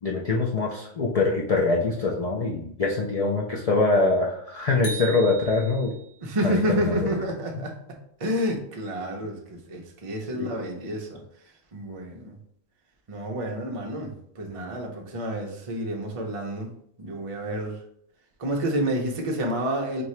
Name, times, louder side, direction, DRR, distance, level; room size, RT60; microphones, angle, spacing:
voice 1, 0.0-5.9 6.4-7.1 10.3-10.5, left 3 dB, 75° left, -1 dB, 0.3 m, -24 dB
sound 1, 4.8-6.2, right 4 dB, 50° left, 1.4 m, -38 dB
voice 2, 6.2-7.7 8.2-11.2 11.7-12.4 13.1-14.1 14.4-16.7 17.0-17.7 18.4-20.0, equal, 35° right, 1 dB, 0.5 m, -29 dB
4.3 x 2.7 x 3.2 m, 0.68 s
omnidirectional pair, 1.3 m